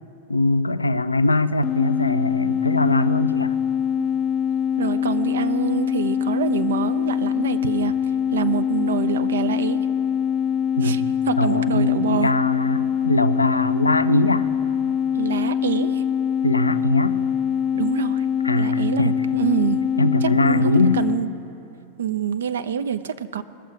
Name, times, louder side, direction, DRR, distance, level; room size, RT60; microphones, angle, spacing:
voice 1, 0.3-3.6 10.8-14.5 16.4-17.2 18.4-19.2 20.0-21.0, left 2 dB, 80° left, 13 dB, 0.4 m, -21 dB
sound 1, 1.6-21.2, left 8 dB, 25° left, 0.5 m, -23 dB
voice 2, 4.8-8.0 8.3-9.8 10.8-11.0 11.3-12.3 15.1-16.0 17.7-18.2 18.5-19.8 20.2-21.3 22.0-23.4, right 8 dB, 65° right, 11 dB, 0.5 m, -26 dB
20.5 x 7.0 x 5.1 m, 2.8 s
figure-of-eight pair, 90°, 0 cm